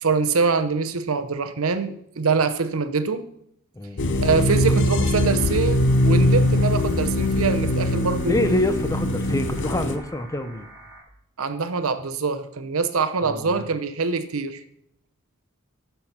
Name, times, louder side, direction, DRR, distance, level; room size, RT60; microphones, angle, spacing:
voice 1, 0.0-3.2 4.2-8.4 11.4-14.6, right 4 dB, 75° right, 9 dB, 0.8 m, -24 dB
sound 1, 4.0-10.0, left 1 dB, 55° left, 0.8 m, -21 dB
sound 2, 5.3-11.0, right 2 dB, 15° right, 4.7 m, -46 dB
voice 2, 8.2-10.7 13.2-13.7, left 1 dB, 15° left, 9 dB, 0.6 m, -26 dB
10.0 x 6.9 x 5.8 m, 0.73 s
head